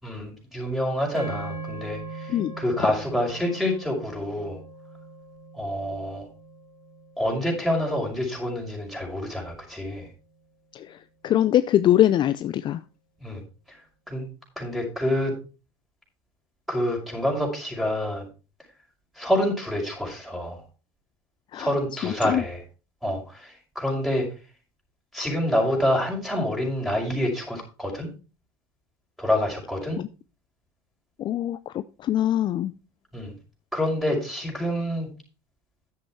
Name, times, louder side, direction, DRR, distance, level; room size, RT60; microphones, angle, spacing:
voice 1, 0.0-4.6 5.5-6.3 7.2-10.1 13.2-13.4 13.7-13.8 14.1-14.3 14.6-15.4 16.7-18.3 19.2-20.6 21.6-22.6 23.0-24.3 25.1-28.1 29.2-30.0 33.1-33.3 33.7-35.1, left 1 dB, ahead, 1 dB, 5.7 m, -27 dB
sound 1, 1.1-9.5, right 3 dB, 20° right, 2.2 m, -41 dB
voice 2, 10.7-12.8 21.5-21.7 22.0-22.4 30.0-30.1 31.2-32.7, left 12 dB, 40° left, 14 dB, 0.5 m, -23 dB
10.5 x 7.6 x 4.5 m, 0.33 s
supercardioid pair, 105°, 12 cm